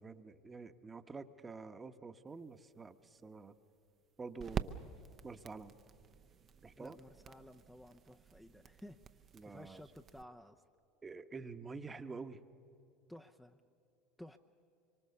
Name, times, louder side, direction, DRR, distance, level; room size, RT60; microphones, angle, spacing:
voice 1, 0.0-3.5 4.2-4.8 5.2-5.8 6.6-7.0 9.3-9.9 11.0-12.4, right 4 dB, 20° right, 10 dB, 1.1 m, -48 dB
sound 1, 2.3-10.2, right 7 dB, 40° right, 0.8 m, -47 dB
voice 2, 6.8-10.6 13.1-13.6 14.2-14.4, left 1 dB, 5° left, 5 dB, 0.8 m, -55 dB
24.5 x 24.0 x 6.9 m, 2.6 s
hypercardioid pair, 80°, 0 cm